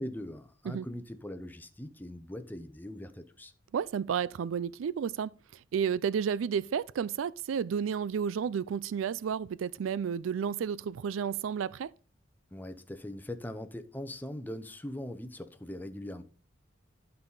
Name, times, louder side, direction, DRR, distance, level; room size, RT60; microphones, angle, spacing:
voice 1, 0.0-3.5 12.5-16.2, left 1 dB, 10° left, 0.7 m, -41 dB
voice 2, 3.7-11.9, right 7 dB, 90° right, 0.4 m, -32 dB
11.0 x 5.5 x 4.0 m
head